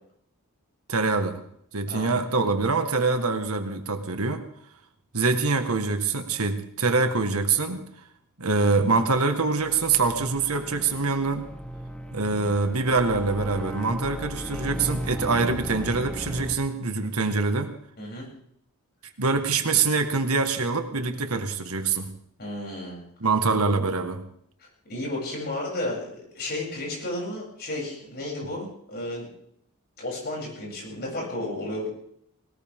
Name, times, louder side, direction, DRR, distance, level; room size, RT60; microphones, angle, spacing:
voice 1, 0.9-1.4 1.7-4.4 5.1-7.8 8.4-11.5 12.1-17.7 19.2-22.1 23.2-24.2, right 4 dB, 75° right, 6 dB, 1.8 m, -24 dB
sound 1, 9.5-16.6, equal, 5° left, 1.4 m, -36 dB
voice 2, 18.0-18.3 22.4-23.0 24.6-29.3 30.0-31.9, left 1 dB, 45° left, -3 dB, 8.0 m, -33 dB
20.0 x 19.0 x 3.7 m, 0.68 s
head